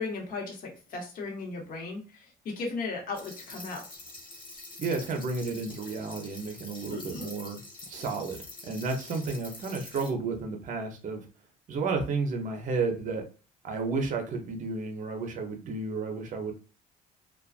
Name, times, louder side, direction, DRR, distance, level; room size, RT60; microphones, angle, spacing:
voice 1, 0.0-3.8 6.9-7.3, left 4 dB, 55° left, 0 dB, 1.0 m, -36 dB
sound 1, 3.1-10.1, left 2 dB, 30° left, 0.9 m, -46 dB
voice 2, 4.8-7.6 7.9-11.2 11.7-13.2 13.6-16.5, right 4 dB, 50° right, 3 dB, 0.7 m, -32 dB
2.4 x 2.2 x 2.4 m, 0.35 s
cardioid pair, 110°, 17 cm